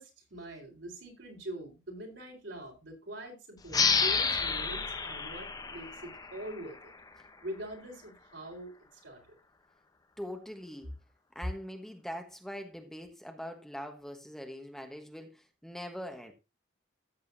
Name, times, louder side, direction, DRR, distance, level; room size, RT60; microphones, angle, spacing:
voice 1, 0.0-6.9 7.4-9.4, right 1 dB, 75° right, 4.2 m, -44 dB
sound 1, 3.7-7.0, left 5 dB, 20° left, 0.8 m, -30 dB
voice 2, 10.2-10.9 11.3-16.3, equal, ahead, 1.2 m, -42 dB
14.0 x 7.9 x 2.7 m
head